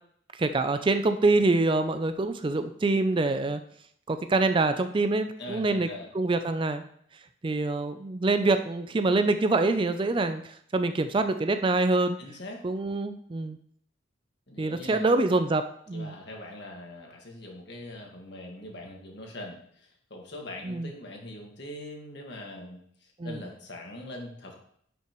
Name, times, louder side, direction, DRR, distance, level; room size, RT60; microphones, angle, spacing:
voice 1, 0.4-3.6 4.1-5.9 6.1-6.8 7.4-12.2 12.6-13.6 14.6-16.1 20.6-20.9 23.2-23.4, right 2 dB, 25° right, 9 dB, 0.4 m, -25 dB
voice 2, 5.4-6.1 12.2-12.6 14.5-15.0 15.9-24.5, left 1 dB, 60° left, 1 dB, 1.8 m, -42 dB
10.5 x 5.8 x 3.0 m, 0.65 s
head